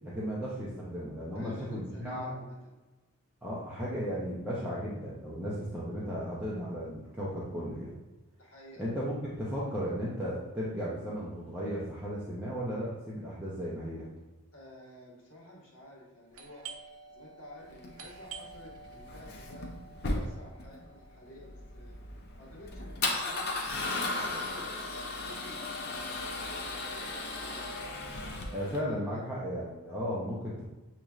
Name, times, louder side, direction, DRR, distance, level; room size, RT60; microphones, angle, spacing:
voice 1, 0.0-2.3 3.4-8.0 8.8-14.1 28.5-30.7, equal, 5° right, -8 dB, 0.6 m, -35 dB
voice 2, 1.3-2.8 5.7-5.8 8.4-8.9 14.5-16.7 17.0-19.7 20.1-21.9 22.4-23.5 23.8-24.7 25.2-28.0 28.6-29.3, left 1 dB, 75° left, -4 dB, 1.4 m, -51 dB
Doorbell, 16.3-25.7 26.0-26.1 26.7-27.0 27.4-28.7, right 5 dB, 70° right, 0.5 m, -51 dB
Male speech man speaking / Car / Engine starting, 17.7-28.8, left 2 dB, 45° left, 0.6 m, -36 dB
6.6 x 3.0 x 2.4 m, 1.1 s
head